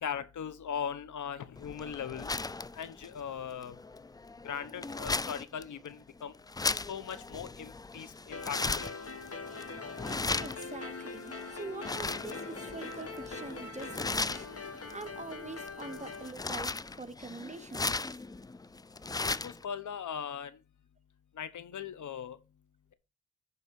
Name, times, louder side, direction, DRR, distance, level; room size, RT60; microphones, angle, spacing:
voice 1, 0.0-2.3 2.8-3.7 4.4-6.3 6.9-8.8 19.4-20.6 21.4-22.4, left 8 dB, 75° left, 1.0 m, -39 dB
sound 1, 1.6-19.6, left 3 dB, 15° left, 0.3 m, -38 dB
sound 2, 8.3-16.3, left 4 dB, 50° left, 1.9 m, -43 dB
voice 2, 10.4-14.5 14.9-18.0, right 3 dB, 25° right, 1.1 m, -44 dB
11.0 x 4.0 x 5.4 m
cardioid pair, 60°, 30 cm